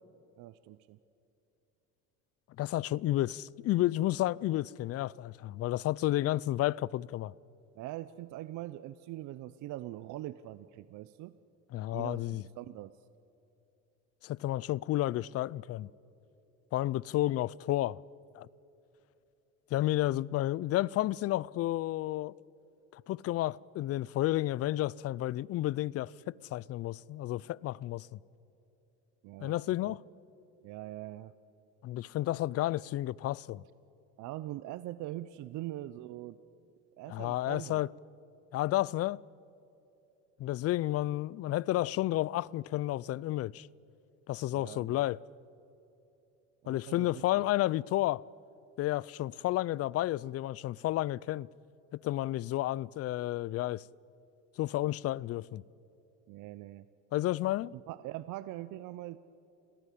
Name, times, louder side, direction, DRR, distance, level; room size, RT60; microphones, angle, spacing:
voice 1, 0.4-1.0 7.7-11.3 11.9-12.9 29.2-30.0 30.6-31.3 34.2-36.4 37.0-37.8 44.5-45.1 46.6-47.5 56.3-56.9 57.7-59.2, right 15 dB, 60° right, 0.8 m, -42 dB
voice 2, 2.6-7.3 11.7-12.4 14.2-15.9 16.7-18.0 18.3-18.5 19.7-22.3 22.9-28.2 29.4-30.0 31.8-33.6 37.1-37.9 38.5-39.2 40.4-43.7 44.3-45.2 46.7-48.2 48.8-51.5 51.9-53.8 54.6-55.6 57.1-57.7, left 15 dB, 45° left, 0.5 m, -31 dB
28.0 x 18.5 x 8.5 m
supercardioid pair, 95°, 34 cm